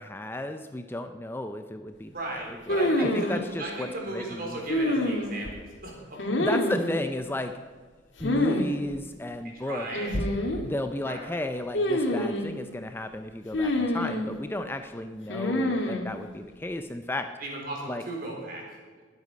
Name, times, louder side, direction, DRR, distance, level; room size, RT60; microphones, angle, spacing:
voice 1, 0.0-4.6 6.4-7.5 8.2-9.9 10.6-17.3 17.9-18.0, left 1 dB, 10° left, 7 dB, 0.5 m, -33 dB
voice 2, 2.1-6.2 9.5-10.2 11.0-11.3 17.4-18.6, right 2 dB, 50° right, -1 dB, 4.0 m, -36 dB
sound 1, 2.7-3.4 4.7-5.5 6.2-6.9 8.2-8.7 8.9-9.0 9.9-10.6 11.7-12.5 13.5-14.3 15.3-16.1, left 1 dB, 70° left, 1.9 m, -26 dB
20.0 x 8.2 x 5.2 m, 1.5 s
head